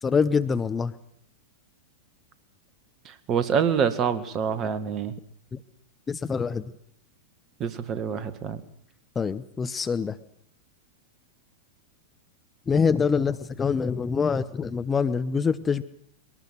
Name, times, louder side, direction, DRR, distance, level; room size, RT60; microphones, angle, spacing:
voice 1, 0.0-1.0 5.5-5.6 6.1-6.7 9.1-10.2 12.7-15.8, left 5 dB, 20° left, 12 dB, 0.8 m, -25 dB
voice 2, 3.1-5.1 7.6-8.6, right 7 dB, 30° right, 12 dB, 1.8 m, -26 dB
22.0 x 18.5 x 7.8 m, 0.69 s
figure-of-eight pair, 95°, 0 cm